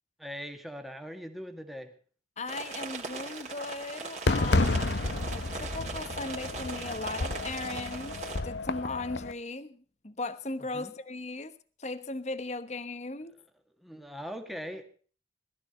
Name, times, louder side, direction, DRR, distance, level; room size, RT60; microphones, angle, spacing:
voice 1, 0.2-1.9 10.7-10.9 13.8-14.9, equal, ahead, 1.9 m, -41 dB
voice 2, 2.4-5.0 5.3-8.2 8.4-11.5 11.8-13.3, left 3 dB, 40° left, 1.1 m, -37 dB
sound 1, 2.5-8.4, right 4 dB, 40° right, 3.2 m, -40 dB
Fireworks, 4.3-9.3, left 2 dB, 70° left, 1.0 m, -31 dB
20.5 x 14.0 x 4.2 m
head